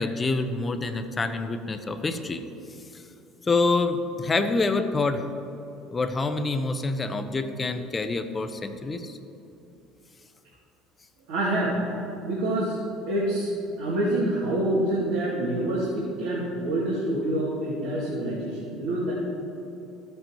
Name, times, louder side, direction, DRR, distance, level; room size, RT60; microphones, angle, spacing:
voice 1, 0.0-2.4 3.4-5.2 5.9-9.2, left 3 dB, 25° left, 8 dB, 0.8 m, -26 dB
voice 2, 11.3-11.8 12.2-12.8 13.1-13.5 13.8-19.1, right 1 dB, 80° right, -9 dB, 2.2 m, -26 dB
13.5 x 7.7 x 3.1 m, 2.9 s
hypercardioid pair, 70°, 0 cm